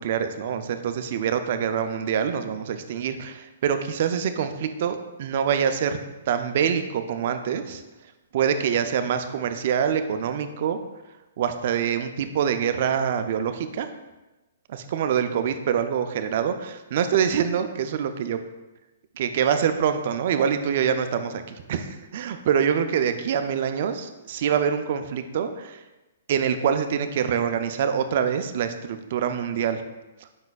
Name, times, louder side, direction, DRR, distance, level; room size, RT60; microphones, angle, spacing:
voice 1, 0.0-6.0 6.3-7.8 8.3-10.8 11.4-13.9 14.7-18.4 19.2-25.8 26.3-29.8, right 8 dB, 55° right, 9 dB, 0.4 m, -25 dB
5.3 x 3.9 x 2.3 m, 1.1 s
hypercardioid pair, 145°, 0 cm